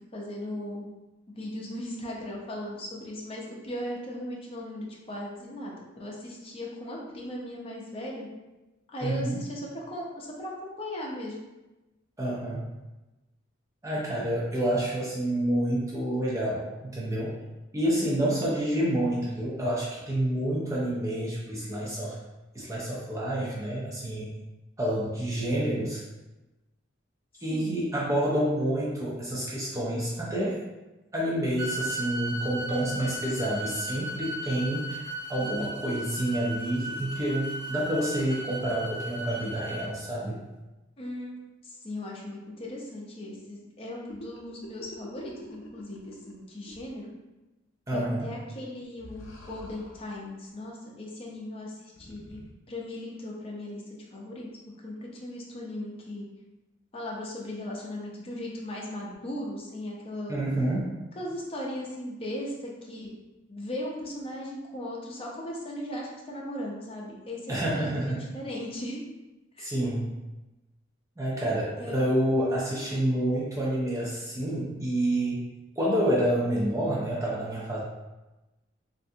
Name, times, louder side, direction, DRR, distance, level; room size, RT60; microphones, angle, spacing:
voice 1, 0.1-0.9 1.4-8.3 8.9-11.4 18.0-18.5 27.5-27.8 41.0-41.4 41.6-47.1 47.9-52.4 52.7-54.5 54.8-56.3 56.9-60.4 61.1-63.1 63.5-69.0 69.6-69.7 71.8-72.0, left 1 dB, 30° left, -3 dB, 0.6 m, -37 dB
voice 2, 9.0-9.4 12.2-12.7 13.8-17.4 17.7-22.2 22.5-24.4 24.8-26.0 27.4-30.6 31.1-40.4 47.9-48.3 60.3-60.9 67.5-68.2 69.6-70.2 71.2-75.5 75.8-77.8, right 1 dB, 15° right, -6 dB, 0.5 m, -28 dB
sound 1, 31.6-39.9, equal, 60° right, 0.7 m, -36 dB
sound 2, 44.1-46.4 46.7-46.8 49.0-50.2 51.9-52.5, left 1 dB, 75° left, 0.5 m, -47 dB
3.2 x 2.5 x 2.7 m, 1.1 s
head